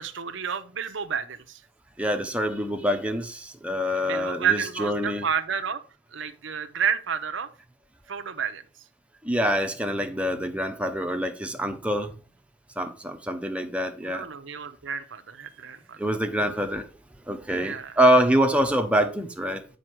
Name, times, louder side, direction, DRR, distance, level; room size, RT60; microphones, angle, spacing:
voice 1, 0.0-1.6 4.0-5.8 6.1-7.5 8.1-8.6 14.0-16.0 17.6-18.0, right 7 dB, 75° right, 0.8 m, -30 dB
voice 2, 2.0-5.3 9.2-12.1 12.8-14.3 16.0-16.9 17.3-19.7, equal, 5° right, 0.9 m, -25 dB
7.5 x 5.4 x 4.6 m
head